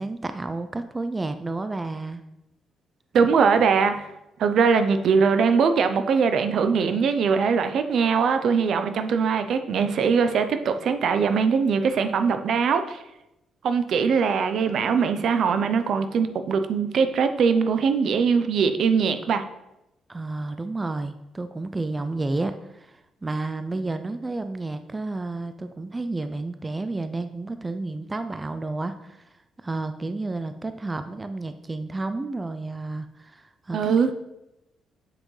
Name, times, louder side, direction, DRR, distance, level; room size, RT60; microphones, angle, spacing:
voice 1, 0.0-2.2 20.1-29.3 29.6-34.1, right 2 dB, 20° right, 9 dB, 0.4 m, -31 dB
voice 2, 3.1-4.1 4.4-13.0 13.6-19.4 33.7-34.1, right 6 dB, 65° right, 9 dB, 0.6 m, -21 dB
7.5 x 6.1 x 3.2 m, 0.91 s
cardioid pair, 90°, 0 cm